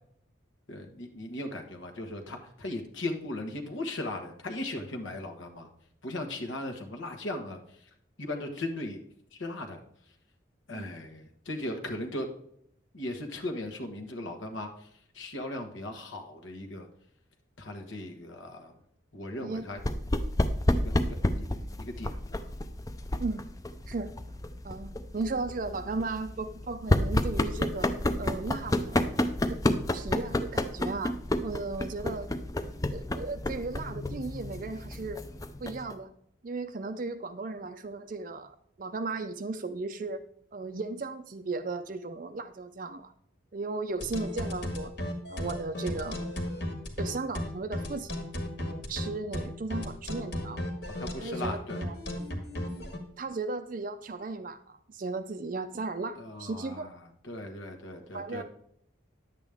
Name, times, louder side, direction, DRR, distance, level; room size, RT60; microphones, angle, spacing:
voice 1, 0.7-5.7 6.0-7.9 8.2-9.0 9.3-9.8 10.7-12.3 12.9-14.9 15.1-16.9 17.6-18.7 19.1-19.8 20.7-22.5 51.0-51.8 56.1-57.0 57.2-58.4, left 1 dB, 70° left, 3 dB, 1.3 m, -38 dB
voice 2, 19.3-19.7 23.2-23.5 23.9-24.1 24.6-27.9 28.2-29.0 29.5-29.6 29.9-32.3 32.9-35.2 35.6-36.1 36.4-38.5 38.8-40.2 40.5-43.1 43.5-44.9 45.3-46.2 47.0-48.2 48.6-50.6 51.2-52.0 53.2-56.9 58.1-58.4, right 3 dB, 40° right, 8 dB, 0.4 m, -36 dB
sound 1, 19.8-35.9, left 1 dB, 15° left, 0.4 m, -30 dB
sound 2, 44.0-53.0, left 1 dB, 55° left, 1.7 m, -34 dB
10.5 x 8.1 x 3.5 m, 0.70 s
head